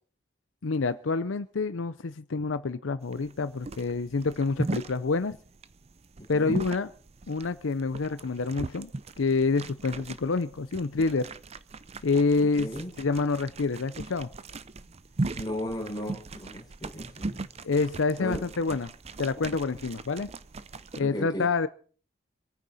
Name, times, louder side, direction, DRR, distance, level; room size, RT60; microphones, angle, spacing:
voice 1, 0.6-5.4 6.3-6.9 7.3-8.9 9.2-11.3 12.0-12.7 13.0-14.3 17.6-18.9 19.2-20.3 21.0-21.7, left 4 dB, 85° left, 13 dB, 0.6 m, -27 dB
sound 1, 3.0-21.0, right 2 dB, 35° right, 0.6 m, -39 dB
voice 2, 6.2-6.6 12.4-12.9 15.4-17.4 18.2-18.4 21.0-21.5, left 1 dB, 20° left, 0 dB, 4.5 m, -36 dB
25.5 x 9.4 x 4.1 m, 0.42 s
head